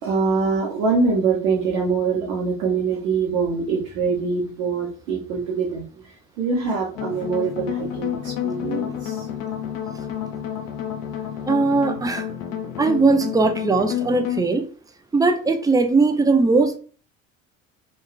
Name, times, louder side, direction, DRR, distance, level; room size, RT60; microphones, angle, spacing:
voice 1, 0.0-9.3, right 4 dB, 85° right, -4 dB, 0.7 m, -24 dB
sound 1, 6.9-14.4, left 9 dB, 80° left, 0.6 m, -30 dB
voice 2, 11.5-12.2 12.8-14.7 15.1-16.8, right 3 dB, 10° right, 7 dB, 0.4 m, -19 dB
2.9 x 2.3 x 2.3 m, 0.40 s
hypercardioid pair, 60°, 40 cm